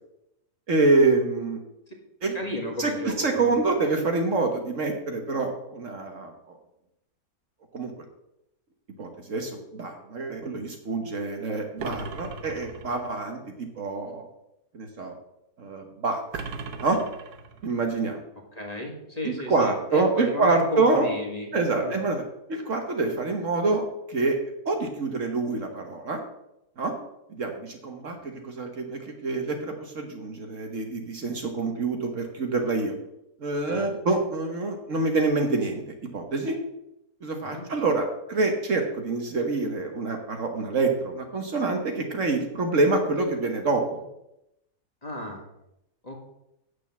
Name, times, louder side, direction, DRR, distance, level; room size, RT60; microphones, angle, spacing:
voice 1, 0.7-1.6 2.2-2.4 2.8-6.3 7.7-7.9 9.0-14.3 14.7-15.1 15.6-16.4 16.8-17.0 17.6-18.2 19.2-21.1 21.5-22.2 22.5-24.4 24.6-26.2 26.8-26.9 27.3-32.9 33.4-35.8 36.1-36.6 37.2-44.1, right 3 dB, 55° right, 3 dB, 1.5 m, -26 dB
voice 2, 2.3-3.6 18.5-21.5 21.8-21.9 33.7-33.9 37.4-37.7 45.0-45.5 46.0-46.3, left 1 dB, 25° left, 0 dB, 1.8 m, -34 dB
sound 1, 11.8-13.2 16.3-17.8, right 4 dB, 75° right, 1.4 m, -38 dB
8.4 x 6.6 x 7.1 m, 0.85 s
omnidirectional pair, 1.7 m